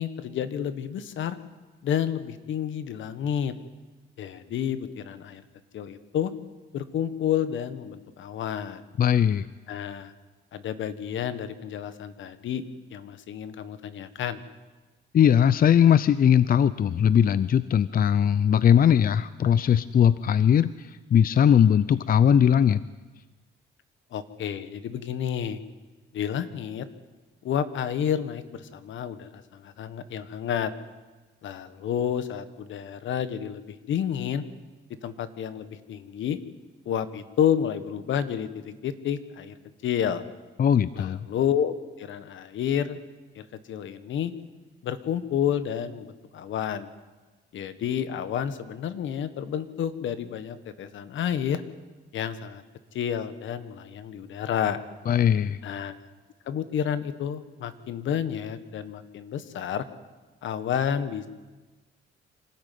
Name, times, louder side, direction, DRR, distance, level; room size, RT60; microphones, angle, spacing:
voice 1, 0.0-1.4 1.8-3.5 4.2-5.4 5.7-6.3 6.7-8.9 9.7-10.1 10.5-12.6 12.9-14.4 24.1-25.6 26.1-26.9 27.4-30.7 31.4-34.4 35.0-36.4 36.8-39.6 39.8-40.2 41.0-43.0 43.3-44.3 44.8-46.9 47.5-51.6 52.1-52.6 52.9-54.8 55.6-55.9 56.5-59.9 60.4-61.3, left 9 dB, 75° left, 12 dB, 1.5 m, -30 dB
voice 2, 9.0-9.5 15.1-22.8 40.6-41.3 55.1-55.6, left 9 dB, 45° left, 16 dB, 0.6 m, -20 dB
25.5 x 13.5 x 9.4 m, 1.3 s
cardioid pair, 90°, 20 cm